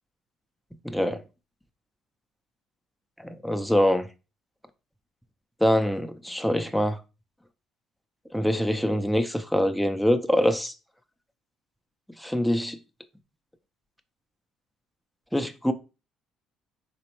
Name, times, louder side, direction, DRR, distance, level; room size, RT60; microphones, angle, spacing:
voice 1, 0.8-1.2 3.2-4.1 5.6-7.0 8.3-10.7 12.2-12.8 15.3-15.7, equal, ahead, 0.4 m, -24 dB
4.2 x 3.0 x 2.9 m
supercardioid pair, 85°, 0 cm